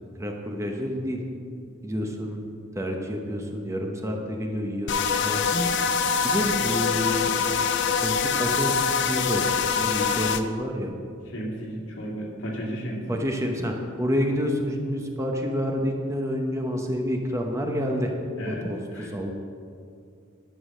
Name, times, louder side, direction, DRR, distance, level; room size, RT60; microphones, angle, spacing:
voice 1, 0.2-1.2 1.8-5.9 6.2-7.3 7.9-8.8 9.1-9.4 9.8-10.9 13.1-18.1 18.4-19.3, equal, 15° right, 2 dB, 0.9 m, -28 dB
sound 1, 4.9-10.4, left 6 dB, 60° left, 0.5 m, -24 dB
voice 2, 11.3-13.1 18.4-19.2, equal, 75° left, -1 dB, 2.2 m, -34 dB
11.5 x 6.2 x 6.3 m, 2.4 s
head